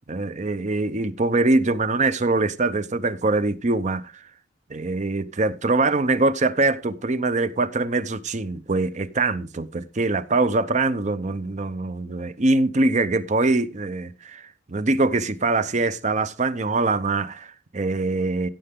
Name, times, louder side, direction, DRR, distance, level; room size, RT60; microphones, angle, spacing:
voice 1, 0.1-4.2 4.7-18.5, right 3 dB, 40° right, 0.7 m, -23 dB
15.5 x 6.7 x 3.7 m
head